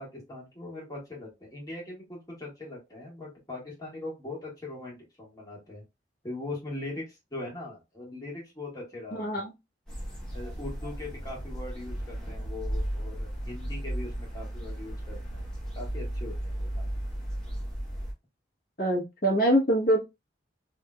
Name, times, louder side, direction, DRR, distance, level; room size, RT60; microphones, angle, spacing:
voice 1, 0.0-5.8 6.2-9.4 10.3-15.5 15.7-17.0, left 2 dB, 20° left, -4 dB, 1.7 m, -41 dB
voice 2, 9.1-9.5 18.8-20.0, right 1 dB, 50° left, -2 dB, 1.2 m, -24 dB
sound 1, 9.9-18.1, right 1 dB, 5° left, 1.2 m, -35 dB
3.6 x 2.9 x 2.3 m, 0.23 s
head